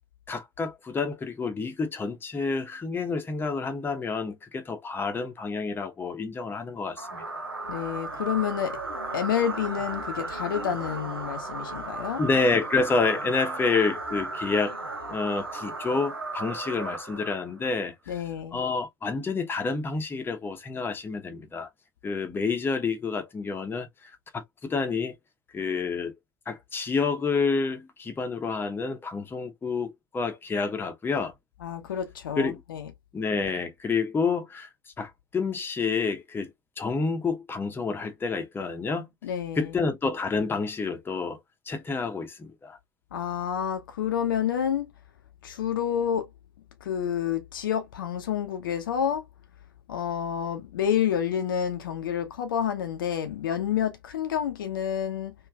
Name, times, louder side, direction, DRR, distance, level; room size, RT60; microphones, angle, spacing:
voice 1, 0.3-7.5 12.2-14.8 15.1-18.2 18.5-21.7 22.0-25.2 25.5-26.1 26.5-31.3 32.4-32.6 33.1-34.7 35.0-36.5 36.8-39.1 39.6-41.4 41.7-42.8, left 4 dB, 20° left, 0.8 m, -29 dB
sound 1, 7.0-17.7, right 3 dB, 90° right, 0.6 m, -35 dB
voice 2, 7.7-8.8 9.1-12.2 18.1-18.6 31.6-32.9 39.2-39.7 43.1-44.9 45.4-46.3 46.8-49.3 49.9-55.3, left 9 dB, 65° left, 0.6 m, -29 dB
3.3 x 2.5 x 2.3 m
figure-of-eight pair, 70°, 12 cm